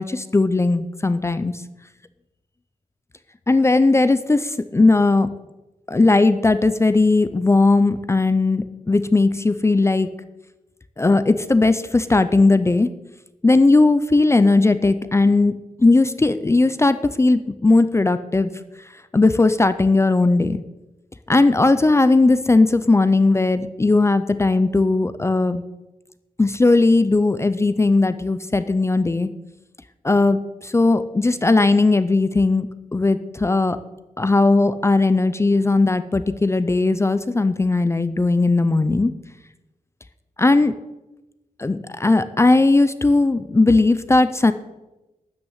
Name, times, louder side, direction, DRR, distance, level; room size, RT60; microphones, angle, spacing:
voice 1, 0.0-1.6 3.5-5.3 5.9-10.1 11.0-12.9 13.4-18.5 19.1-20.6 21.3-25.6 26.4-29.3 30.0-33.8 34.2-39.1 40.4-40.7 41.6-44.5, left 3 dB, 20° left, 11 dB, 0.5 m, -17 dB
13.0 x 5.9 x 9.2 m, 1.0 s
wide cardioid pair, 165°, 14 cm